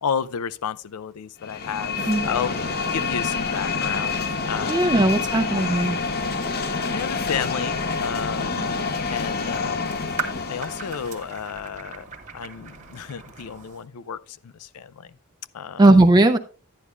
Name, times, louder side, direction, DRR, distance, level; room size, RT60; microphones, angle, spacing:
voice 1, 0.0-2.6 2.9-5.0 5.3-5.7 6.9-15.2 15.5-15.8, left 7 dB, 85° left, 0.4 m, -32 dB
sound 1, 1.4-11.3, left 4 dB, 45° left, 0.7 m, -27 dB
voice 2, 2.0-2.3 4.7-6.0 15.8-16.4, right 2 dB, 20° right, 0.4 m, -17 dB
sound 2, 9.8-13.8, right 4 dB, 35° right, 1.1 m, -37 dB
11.0 x 9.9 x 2.4 m
head